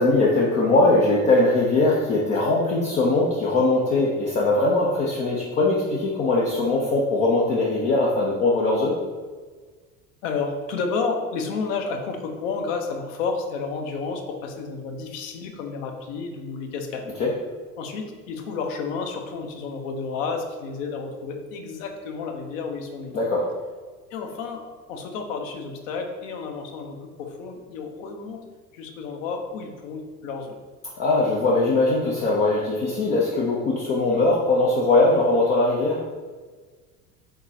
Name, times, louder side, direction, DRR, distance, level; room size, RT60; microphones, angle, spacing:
voice 1, 0.0-9.0 17.2-17.3 23.1-23.5 31.0-36.0, left 2 dB, 20° left, -4 dB, 0.3 m, -21 dB
voice 2, 10.2-17.1 17.8-23.1 24.1-28.4 28.7-30.6, left 4 dB, 55° left, 3 dB, 0.8 m, -31 dB
3.8 x 3.8 x 2.7 m, 1.4 s
figure-of-eight pair, 75°, 46 cm